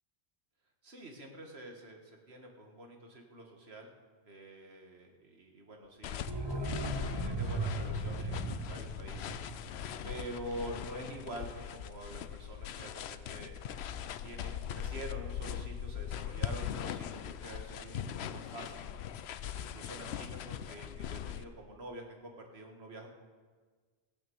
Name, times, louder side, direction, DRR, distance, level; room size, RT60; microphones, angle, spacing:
voice 1, 0.8-3.9 4.2-9.3 10.0-13.6 14.2-18.8 19.4-23.1, right 1 dB, 70° right, 2 dB, 2.0 m, -47 dB
sound 1, 6.0-21.4, left 9 dB, 75° left, 0.8 m, -40 dB
sound 2, 6.1-10.9 11.2-11.3, right 2 dB, 25° right, 1.1 m, -38 dB
15.0 x 9.6 x 7.0 m, 1.5 s
omnidirectional pair, 1.1 m